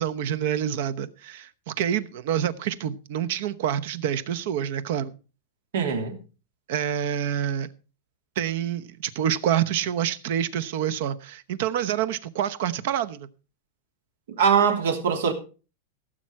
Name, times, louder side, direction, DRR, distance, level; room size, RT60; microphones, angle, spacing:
voice 1, 0.0-5.1 6.7-7.7 8.4-13.3, right 10 dB, 50° right, 0.9 m, -27 dB
voice 2, 5.7-6.2 14.3-15.3, right 6 dB, 80° right, 3.0 m, -22 dB
17.0 x 7.7 x 4.6 m
supercardioid pair, 175°, 0 cm